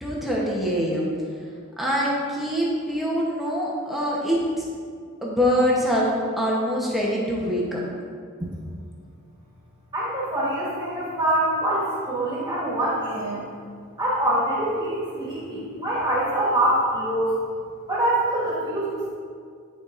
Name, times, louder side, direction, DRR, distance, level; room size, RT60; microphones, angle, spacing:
voice 1, 0.0-1.1 1.8-4.7 5.2-7.8, equal, ahead, -6 dB, 0.9 m, -24 dB
voice 2, 9.9-13.5 14.0-17.3 17.9-19.1, right 1 dB, 20° right, -8 dB, 1.6 m, -24 dB
10.5 x 4.6 x 2.5 m, 2.2 s
head